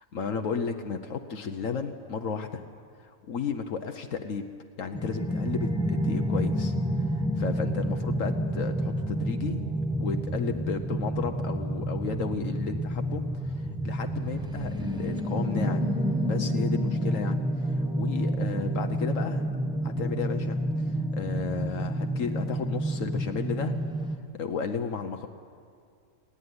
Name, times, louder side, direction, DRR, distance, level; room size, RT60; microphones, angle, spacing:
voice 1, 0.0-2.6 3.0-4.4 4.8-9.7 10.0-15.9 16.2-19.4 19.8-20.6 20.9-23.7 24.3-25.3, left 6 dB, 70° left, 6 dB, 1.3 m, -33 dB
sound 1, 4.9-24.2, right 1 dB, 5° right, 1.0 m, -29 dB
29.0 x 9.9 x 9.7 m, 2.3 s
omnidirectional pair, 1.4 m